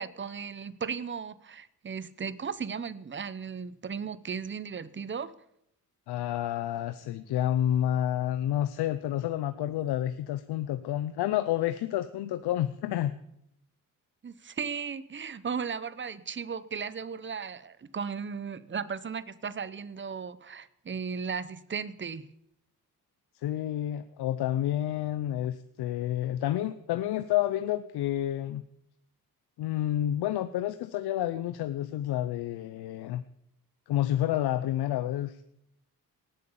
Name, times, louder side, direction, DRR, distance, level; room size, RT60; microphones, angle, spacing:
voice 1, 0.0-5.3 14.2-22.2, right 6 dB, 30° right, 16 dB, 0.9 m, -36 dB
voice 2, 6.1-13.2 23.4-28.7 29.6-33.2 33.9-35.4, left 12 dB, 90° left, 12 dB, 0.7 m, -29 dB
18.0 x 8.0 x 7.1 m, 0.77 s
cardioid pair, 70°, 38 cm